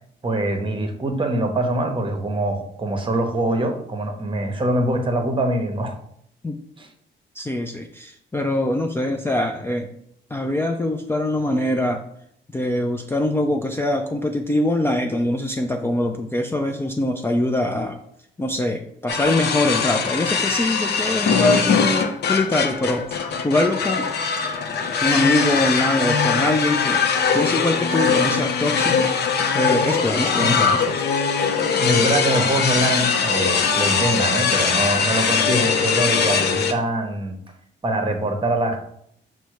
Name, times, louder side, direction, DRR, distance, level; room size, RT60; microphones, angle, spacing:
voice 1, 0.2-6.0 6.8-6.9 30.4-30.7 31.8-37.4 37.8-38.8, right 1 dB, 25° right, 4 dB, 0.9 m, -23 dB
voice 2, 7.3-9.9 10.3-12.0 12.5-18.0 18.4-24.1 25.0-27.0 27.3-29.1 29.5-30.9, left 1 dB, 10° left, 3 dB, 0.4 m, -23 dB
sound 1, 19.1-36.7, left 5 dB, 55° left, 0.6 m, -21 dB
5.3 x 2.1 x 4.6 m, 0.71 s
cardioid pair, 90°, 20 cm